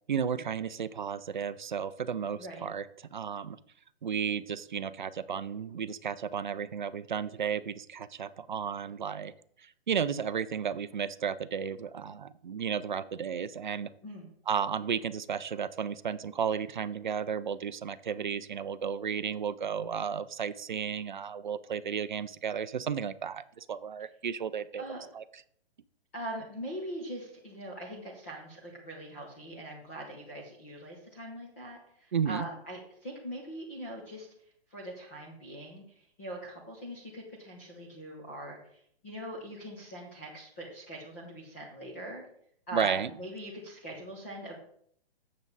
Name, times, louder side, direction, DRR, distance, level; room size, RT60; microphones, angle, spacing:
voice 1, 0.1-2.9 3.1-3.6 4.0-9.3 9.6-13.9 14.5-24.8 25.1-25.2 32.1-32.5 42.7-43.1, right 7 dB, 50° right, 14 dB, 0.4 m, -33 dB
voice 2, 2.3-2.7 14.0-14.3 24.8-25.0 26.1-34.3 34.7-42.2 42.7-44.6, right 1 dB, 15° left, -3 dB, 0.7 m, -42 dB
7.3 x 7.2 x 4.0 m, 0.65 s
hypercardioid pair, 175°, 31 cm